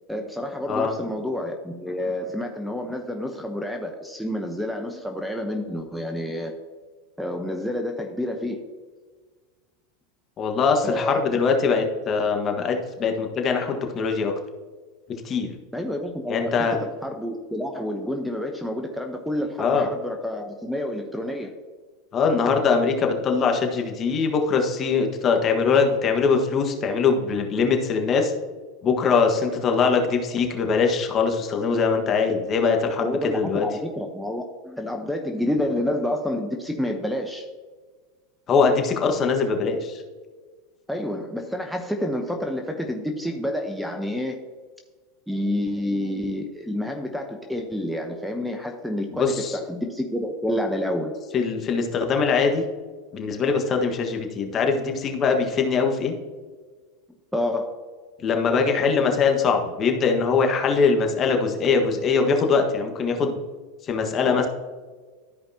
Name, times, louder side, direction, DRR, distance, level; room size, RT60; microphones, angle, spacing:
voice 1, 0.1-6.5 7.2-8.6 10.8-11.4 15.7-21.5 33.0-37.5 40.9-44.4 45.3-51.1 57.3-57.7, left 1 dB, ahead, 4 dB, 0.9 m, -29 dB
voice 2, 10.4-14.3 15.2-15.5 16.3-16.8 19.6-19.9 22.1-28.3 28.8-33.6 38.5-40.0 49.2-49.6 51.3-52.6 53.1-56.1 58.2-63.4 63.8-64.5, left 5 dB, 35° left, 3 dB, 1.4 m, -22 dB
13.0 x 5.1 x 2.8 m, 1.4 s
hypercardioid pair, 90°, 0 cm